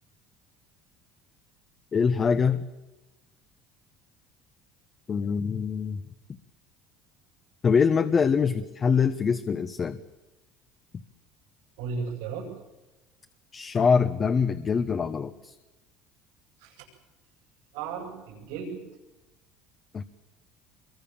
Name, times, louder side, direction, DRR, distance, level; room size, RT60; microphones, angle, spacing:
voice 1, 1.9-2.6 5.1-6.0 7.6-10.0 13.5-15.5 19.9-20.0, left 6 dB, 35° left, 9 dB, 1.2 m, -24 dB
voice 2, 11.8-12.5 16.6-16.8 17.7-18.8, right 5 dB, 85° right, -3 dB, 7.6 m, -35 dB
26.0 x 23.0 x 7.3 m, 1.1 s
supercardioid pair, 95°, 0 cm